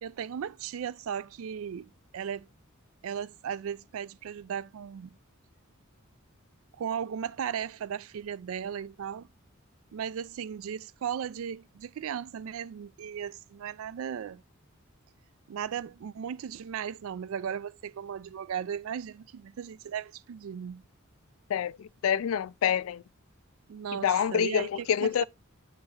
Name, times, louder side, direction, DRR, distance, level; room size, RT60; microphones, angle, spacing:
voice 1, 0.0-2.5 3.0-5.1 6.8-9.3 9.9-14.4 15.5-20.8 23.7-25.2, right 8 dB, 75° right, 0.3 m, -36 dB
voice 2, 21.5-23.0 24.0-25.2, left 8 dB, 70° left, 0.3 m, -27 dB
8.8 x 3.9 x 2.7 m
head